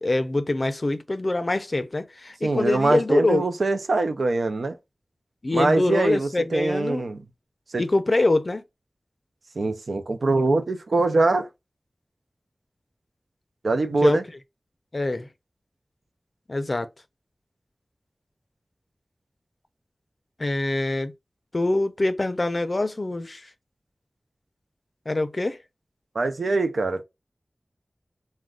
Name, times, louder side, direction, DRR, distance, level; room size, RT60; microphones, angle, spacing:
voice 1, 0.0-3.4 5.4-7.0 7.8-8.6 14.0-14.2 14.9-15.3 16.5-16.9 20.4-21.1 21.5-23.4 25.1-25.6, left 2 dB, 45° left, 0.4 m, -24 dB
voice 2, 2.4-4.8 5.5-7.2 7.7-7.8 9.6-11.5 13.6-14.2 26.1-27.0, right 2 dB, 90° right, 0.4 m, -23 dB
2.4 x 2.1 x 3.5 m
wide cardioid pair, 75°, 0 cm